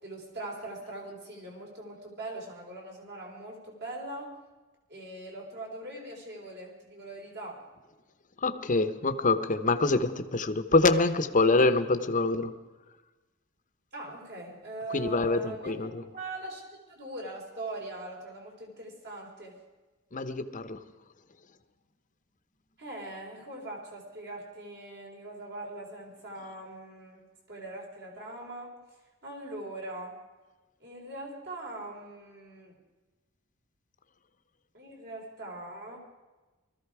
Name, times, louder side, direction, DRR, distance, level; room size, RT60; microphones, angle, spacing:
voice 1, 0.0-4.3 4.9-7.6 13.9-16.6 16.9-19.6 22.8-27.2 27.5-28.7 29.2-30.2 30.8-32.8 34.7-36.0, right 2 dB, 55° right, -1 dB, 4.2 m, -41 dB
voice 2, 8.4-12.5 14.9-16.0 20.1-20.8, left 3 dB, 40° left, 10 dB, 0.9 m, -25 dB
20.0 x 14.5 x 4.8 m, 1.2 s
head